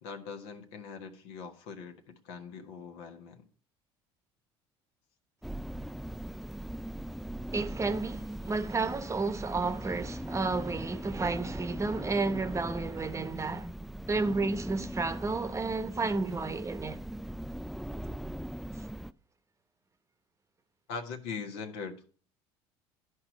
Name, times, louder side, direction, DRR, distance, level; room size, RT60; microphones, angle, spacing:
voice 1, 0.0-3.5 20.9-22.2, left 5 dB, 80° left, 1.4 m, -42 dB
sound 1, 5.4-19.1, right 1 dB, ahead, 0.3 m, -40 dB
voice 2, 7.5-13.7 14.1-17.0, right 3 dB, 20° right, 0.9 m, -31 dB
11.5 x 4.8 x 6.0 m
hypercardioid pair, 80°, 14 cm